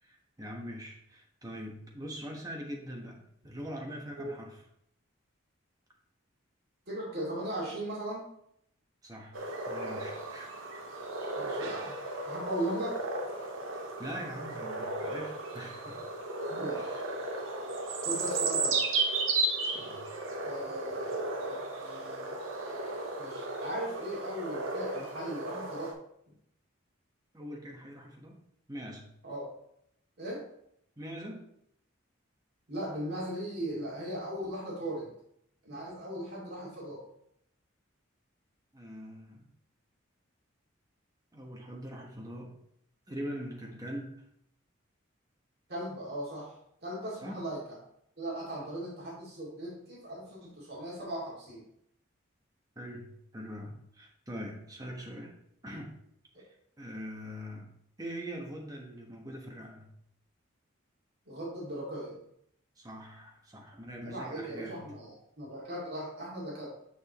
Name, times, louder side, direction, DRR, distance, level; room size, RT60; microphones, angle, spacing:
voice 1, 0.0-4.6 9.0-10.5 11.2-11.3 14.0-16.0 16.7-17.0 19.7-20.1 27.3-28.4 28.7-29.1 31.0-31.5 38.7-39.5 41.3-42.6 43.1-44.2 47.2-47.4 52.7-55.4 55.6-56.0 56.4-59.9 62.8-64.9, equal, 20° right, -1 dB, 1.2 m, -43 dB
voice 2, 6.9-8.3 11.4-11.9 12.2-13.0 16.5-17.0 18.0-18.9 20.4-22.4 23.2-26.0 29.2-29.5 30.2-30.4 32.7-35.1 35.6-37.0 45.7-46.5 46.8-47.8 48.2-51.6 61.3-62.2 64.0-66.7, right 1 dB, 50° right, -6 dB, 2.6 m, -38 dB
sound 1, 9.3-25.9, right 3 dB, 75° right, 1.0 m, -34 dB
6.4 x 6.1 x 3.1 m, 0.72 s
head